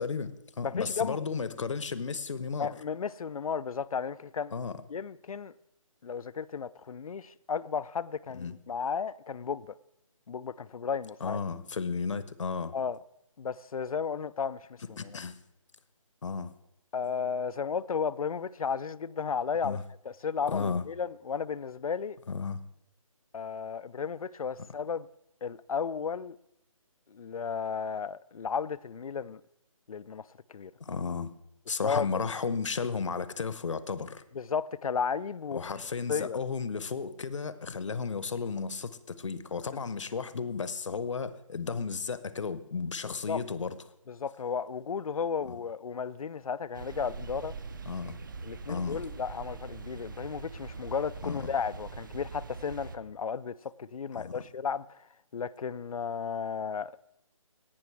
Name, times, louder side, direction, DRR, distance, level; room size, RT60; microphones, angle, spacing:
voice 1, 0.0-2.7 4.5-4.8 8.3-8.6 11.2-12.8 15.0-15.4 16.2-16.5 19.6-19.8 20.5-20.9 22.3-22.6 30.8-31.3 31.7-34.2 35.5-43.8 47.9-48.2 48.7-49.0 51.2-51.5 54.1-54.4, left 5 dB, 60° left, 0.8 m, -33 dB
voice 2, 0.6-1.2 2.6-4.5 4.9-5.5 6.0-9.7 10.3-11.4 12.7-13.0 13.4-15.2 16.9-19.8 20.0-22.2 23.3-25.1 25.4-26.4 27.1-29.4 29.9-30.7 31.8-32.1 34.3-35.6 36.1-36.4 43.3-43.4 44.1-47.5 48.4-56.9, left 6 dB, 80° left, 0.5 m, -34 dB
sound 1, 46.7-53.0, right 4 dB, 35° right, 0.7 m, -42 dB
17.5 x 6.1 x 4.6 m
hypercardioid pair, 170°, 18 cm